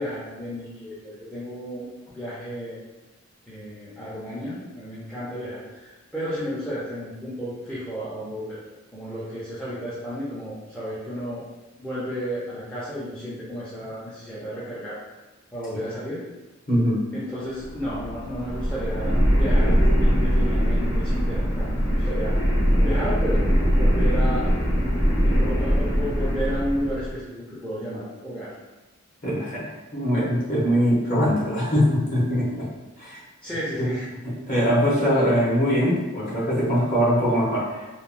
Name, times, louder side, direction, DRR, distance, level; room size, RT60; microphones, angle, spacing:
voice 1, 0.0-1.9 2.1-2.8 3.5-8.6 8.9-11.4 11.8-15.0 15.5-16.2 17.1-22.3 22.8-23.4 23.7-24.9 25.2-28.5 33.4-34.1, equal, 5° left, -11 dB, 0.4 m, -32 dB
voice 2, 16.7-17.0 29.2-32.7 33.0-33.2 33.8-33.9 34.2-37.9, equal, 40° left, -8 dB, 1.0 m, -22 dB
sound 1, 17.5-27.1, equal, 80° left, 1.0 m, -22 dB
2.9 x 2.1 x 2.5 m, 1.1 s
head